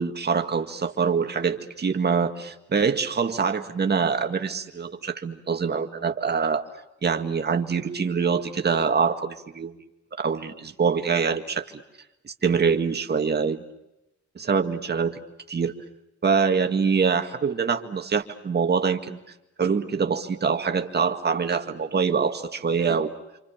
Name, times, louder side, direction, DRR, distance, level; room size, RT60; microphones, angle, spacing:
voice 1, 0.0-6.6 7.0-9.7 10.2-11.6 12.4-13.6 14.4-15.2 15.5-15.7 16.2-19.2 19.6-23.1, right 5 dB, 35° right, 6 dB, 2.0 m, -24 dB
28.0 x 27.5 x 7.3 m, 0.92 s
wide cardioid pair, 145°, 29 cm